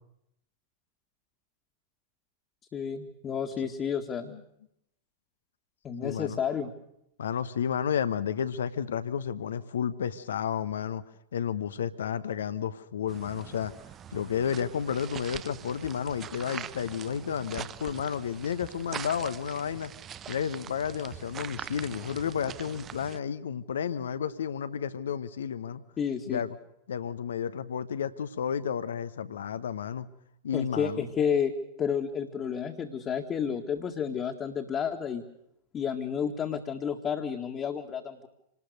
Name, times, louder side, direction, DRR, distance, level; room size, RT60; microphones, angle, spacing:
voice 1, 2.7-4.4 5.8-6.7 26.0-26.4 30.5-31.5 31.8-35.2 35.7-38.3, left 7 dB, 25° left, 4 dB, 1.9 m, -31 dB
voice 2, 6.0-6.4 7.2-11.0 11.3-13.7 14.1-19.9 20.3-25.8 26.3-26.5 26.9-30.1 30.4-31.1, left 8 dB, 65° left, 12 dB, 1.1 m, -32 dB
sound 1, 13.1-23.2, right 9 dB, 25° right, 0.9 m, -43 dB
27.0 x 19.5 x 6.6 m, 0.78 s
figure-of-eight pair, 90°, 0 cm